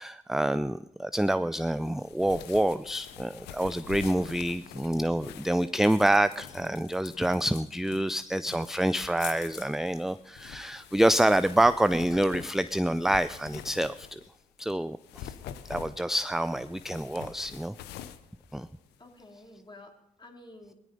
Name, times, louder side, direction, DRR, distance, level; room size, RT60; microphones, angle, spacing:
voice 1, 0.0-14.2 14.6-15.3 15.6-17.8 18.5-18.7, right 1 dB, ahead, 14 dB, 0.5 m, -27 dB
sound 1, 1.8-14.4 14.9-19.2, left 10 dB, 90° left, 0.7 m, -46 dB
voice 2, 19.0-20.7, left 2 dB, 30° left, 2 dB, 3.4 m, -51 dB
16.0 x 13.0 x 5.3 m, 0.82 s
supercardioid pair, 40°, 17 cm